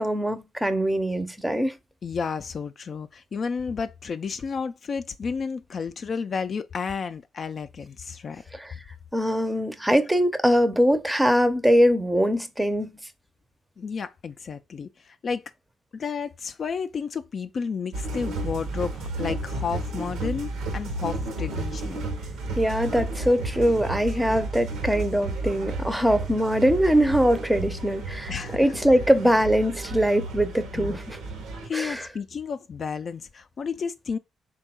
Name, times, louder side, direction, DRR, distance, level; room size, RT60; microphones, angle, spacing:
voice 1, 0.0-1.8 8.5-8.7 9.1-12.9 22.6-31.2 31.7-32.1, equal, 5° right, 0.6 m, -22 dB
voice 2, 2.0-8.4 13.8-15.4 15.9-22.0 28.3-28.6 30.7-31.0 31.6-34.2, left 5 dB, 50° left, 0.3 m, -32 dB
sound 1, 17.9-31.7, right 2 dB, 85° right, 0.7 m, -32 dB
3.6 x 2.3 x 4.1 m
cardioid pair, 70°, 0 cm